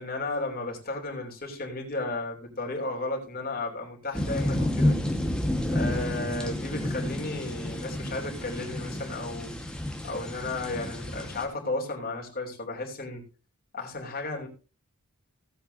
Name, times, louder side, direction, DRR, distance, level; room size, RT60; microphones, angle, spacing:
voice 1, 0.0-5.0 5.7-9.7 10.0-13.2 13.7-14.5, left 2 dB, 45° left, 1 dB, 3.0 m, -34 dB
sound 1, 4.1-11.5, left 1 dB, 5° left, 1.4 m, -30 dB
16.5 x 7.9 x 2.7 m, 0.33 s
head